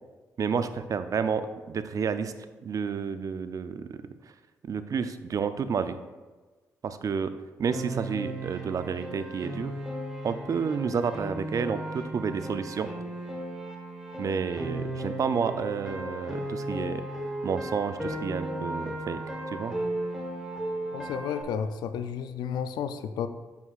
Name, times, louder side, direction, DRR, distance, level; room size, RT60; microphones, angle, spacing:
voice 1, 0.4-2.3 2.6-4.0 4.7-6.0 6.8-7.3 7.6-9.7 10.2-12.9 14.2-17.0 17.4-19.2 19.5-19.7, right 6 dB, 55° right, 11 dB, 0.5 m, -30 dB
Piano, 7.7-21.4, right 1 dB, 5° right, 1.4 m, -35 dB
voice 2, 20.9-23.3, left 7 dB, 85° left, 11 dB, 0.4 m, -32 dB
6.9 x 6.3 x 2.4 m, 1.3 s
cardioid pair, 70°, 7 cm